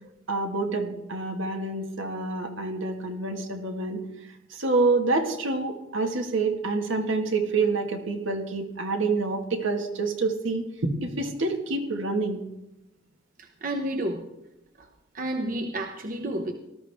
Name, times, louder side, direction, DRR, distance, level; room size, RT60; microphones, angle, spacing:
voice 1, 0.3-4.0 4.5-12.4, right 3 dB, 75° right, 4 dB, 1.7 m, -27 dB
voice 2, 13.4-14.3 14.8-14.9 15.1-16.5, right 1 dB, 45° right, 5 dB, 1.0 m, -31 dB
18.5 x 13.0 x 3.5 m, 0.93 s
head